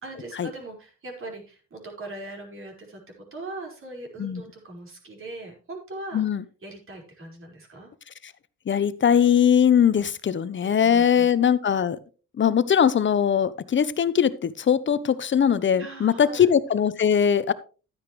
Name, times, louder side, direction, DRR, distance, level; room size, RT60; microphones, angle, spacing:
voice 1, 0.0-3.0 3.3-6.2 6.6-7.9 10.6-11.3 15.7-16.5, right 2 dB, 45° right, 0 dB, 5.1 m, -40 dB
voice 2, 8.7-12.0 12.4-17.5, left 8 dB, 40° left, 15 dB, 0.9 m, -21 dB
12.5 x 9.6 x 3.2 m, 0.36 s
cardioid pair, 90°, 30 cm